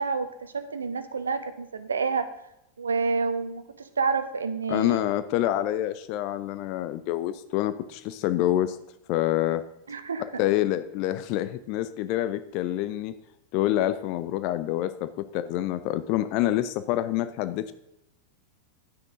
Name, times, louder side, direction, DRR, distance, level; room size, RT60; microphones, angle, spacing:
voice 1, 0.0-2.3 2.8-5.0 9.9-10.2, right 4 dB, 70° right, 11 dB, 1.0 m, -28 dB
voice 2, 4.7-8.8 9.1-9.6 10.4-13.1 13.5-17.7, left 13 dB, 45° left, 13 dB, 0.6 m, -27 dB
11.5 x 9.8 x 3.7 m, 0.83 s
figure-of-eight pair, 90°, 0 cm